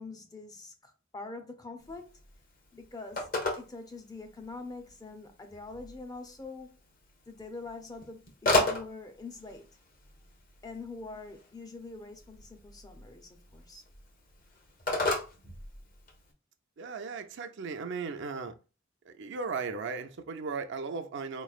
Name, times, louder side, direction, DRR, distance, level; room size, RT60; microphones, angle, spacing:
voice 1, 0.0-2.2 2.7-3.3 3.6-6.8 7.3-9.7 10.6-13.8, left 3 dB, 20° left, 0.6 m, -44 dB
Telephone, 1.8-16.3, left 2 dB, 45° left, 1.0 m, -36 dB
voice 2, 16.8-18.5 19.1-21.4, right 4 dB, 60° right, 0.5 m, -36 dB
4.2 x 3.1 x 2.4 m
head